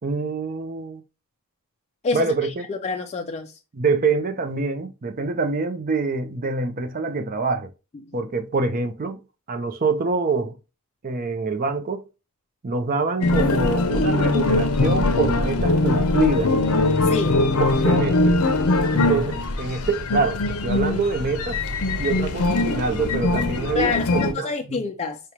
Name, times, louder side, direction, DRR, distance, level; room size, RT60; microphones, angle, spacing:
voice 1, 0.0-1.0 2.1-2.6 3.7-7.7 8.1-9.2 9.5-10.5 11.0-12.0 12.6-16.5 17.6-18.4 18.9-21.6 22.0-24.8, right 3 dB, 40° right, 0.5 m, -25 dB
voice 2, 2.7-3.5 17.1-17.4 23.7-25.2, left 4 dB, 30° left, 0.4 m, -26 dB
sound 1, 13.2-24.3, left 2 dB, 75° left, 0.6 m, -21 dB
5.0 x 2.3 x 2.9 m
head